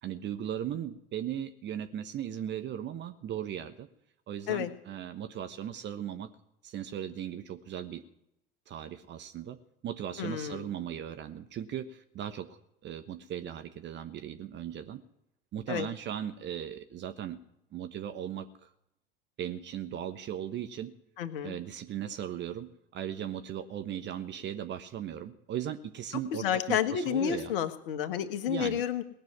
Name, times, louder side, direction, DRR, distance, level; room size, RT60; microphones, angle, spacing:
voice 1, 0.0-3.9 4.3-6.3 6.6-8.0 8.7-9.6 9.8-15.0 15.5-17.4 17.7-18.7 19.4-20.9 21.4-27.5 28.5-28.8, right 10 dB, 40° right, 9 dB, 1.2 m, -37 dB
voice 2, 10.2-10.6 15.7-15.9 21.2-21.6 26.3-29.0, left 9 dB, 65° left, 9 dB, 1.5 m, -30 dB
19.0 x 6.8 x 9.6 m, 0.80 s
figure-of-eight pair, 75°, 29 cm